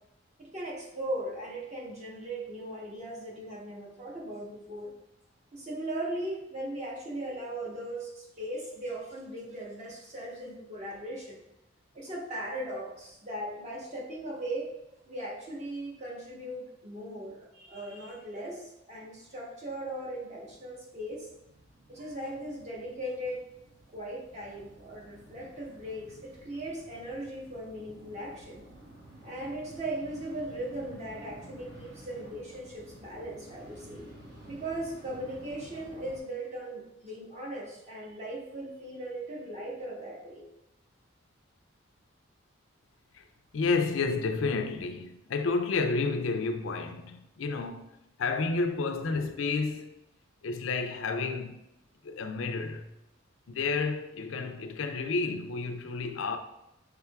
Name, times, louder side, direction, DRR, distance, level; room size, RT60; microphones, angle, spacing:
voice 1, 0.4-4.9 5.5-11.4 11.9-14.7 15.1-21.3 21.9-23.5 23.9-28.6 29.2-34.1 34.5-40.5, right 1 dB, 35° right, 1.0 m, -38 dB
sound 1, 19.2-19.4 19.6-36.2, right 1 dB, 55° right, 1.2 m, -52 dB
voice 2, 43.5-47.9 48.2-50.0 50.4-51.6 52.0-52.9 53.5-56.4, left 4 dB, 75° left, 0.4 m, -30 dB
5.8 x 3.6 x 2.3 m
head